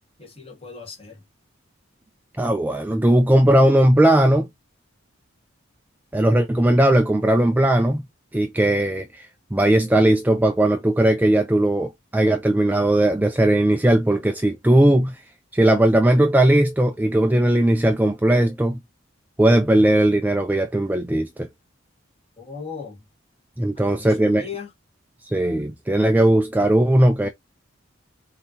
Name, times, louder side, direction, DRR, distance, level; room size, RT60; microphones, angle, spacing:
voice 1, 0.2-1.2 22.4-23.0 23.7-24.7, left 5 dB, 30° left, 1.7 m, -37 dB
voice 2, 2.4-4.5 6.1-8.0 8.3-15.2 15.5-18.8 19.4-21.5 23.6-24.5 25.3-27.3, right 1 dB, 10° right, 0.3 m, -18 dB
5.2 x 2.9 x 2.9 m
head